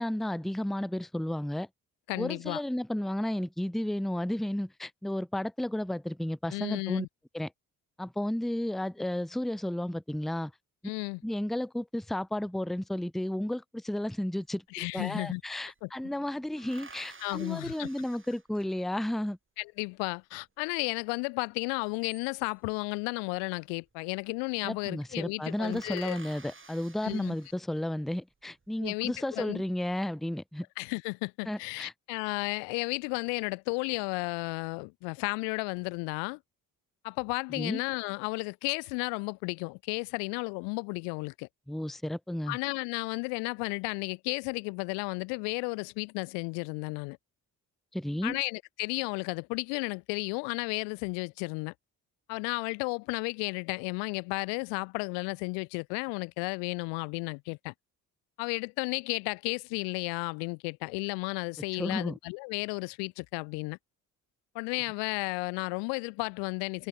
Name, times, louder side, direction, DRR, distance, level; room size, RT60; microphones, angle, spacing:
voice 1, 0.0-1.7 2.2-7.1 7.3-7.5 8.0-10.5 11.2-19.4 24.6-30.7 31.5-31.9 37.6-37.8 41.7-42.6 47.9-48.4 61.8-62.2, left 1 dB, ahead, 0.9 m, -33 dB
voice 2, 2.1-2.6 6.5-7.1 10.8-11.2 14.7-15.4 15.8-15.9 17.2-17.9 19.6-26.2 27.0-27.3 28.8-29.6 30.8-36.4 37.0-41.5 42.5-47.2 48.2-51.7 52.3-57.7 58.4-63.8 64.5-66.9, left 35 dB, 75° left, 1.4 m, -33 dB
sound 1, 14.4-14.5 14.7-15.8 16.6-19.1 21.7-22.7 23.9-24.3 24.6-24.7 25.0-25.1 25.4-28.0 28.5-29.2, right 4 dB, 30° right, 7.7 m, -53 dB
hypercardioid pair, 45°, 43 cm